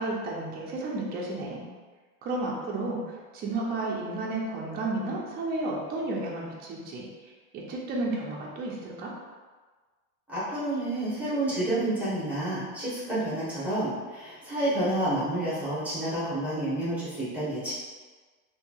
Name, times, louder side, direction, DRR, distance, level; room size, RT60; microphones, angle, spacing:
voice 1, 0.0-1.7 2.2-3.0 3.3-7.1 7.5-9.1, right 2 dB, 25° right, -3 dB, 0.4 m, -32 dB
voice 2, 10.3-17.7, right 1 dB, 5° right, -11 dB, 0.9 m, -29 dB
2.7 x 2.6 x 2.3 m, 1.4 s
supercardioid pair, 145°, 40 cm